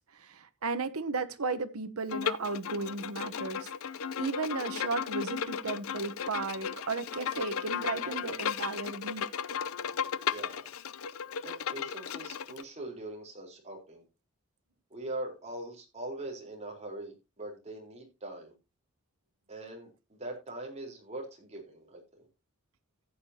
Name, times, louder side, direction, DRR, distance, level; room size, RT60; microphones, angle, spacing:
voice 1, 0.1-3.7 4.2-9.2, right 4 dB, 85° right, 1.0 m, -35 dB
Bowed string instrument, 2.1-12.6, left 7 dB, 75° left, 0.6 m, -35 dB
voice 2, 10.3-10.7 11.4-14.0 14.9-18.5 19.5-22.3, right 1 dB, 30° right, 3.9 m, -42 dB
14.5 x 8.8 x 2.8 m
head